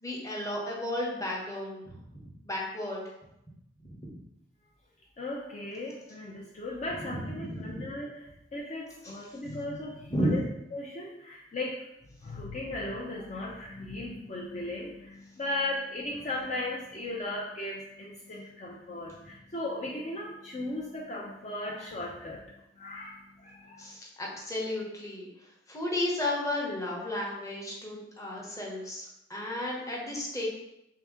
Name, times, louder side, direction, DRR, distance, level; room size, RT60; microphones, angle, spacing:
voice 1, 0.0-3.0 7.1-7.9 9.0-9.1 10.1-10.4 23.8-25.3 25.7-30.5, left 1 dB, 20° left, -2 dB, 0.8 m, -33 dB
voice 2, 5.2-10.4 10.7-11.8 12.2-22.4 22.8-23.8, left 2 dB, 40° left, -3 dB, 0.5 m, -37 dB
3.4 x 2.8 x 3.6 m, 0.83 s
head